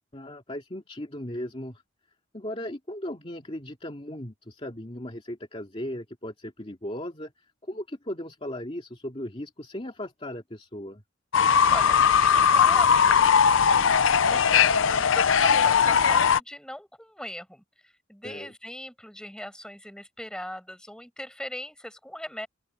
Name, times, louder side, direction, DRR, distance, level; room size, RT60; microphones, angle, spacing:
voice 1, 0.1-1.8 2.3-11.0 18.2-18.5, left 1 dB, 30° left, 2.5 m, -37 dB
Fowl / Bird, 11.3-16.4, left 7 dB, 85° left, 0.6 m, -19 dB
voice 2, 11.7-13.9 14.2-22.5, left 1 dB, 5° left, 6.4 m, -40 dB
open air
head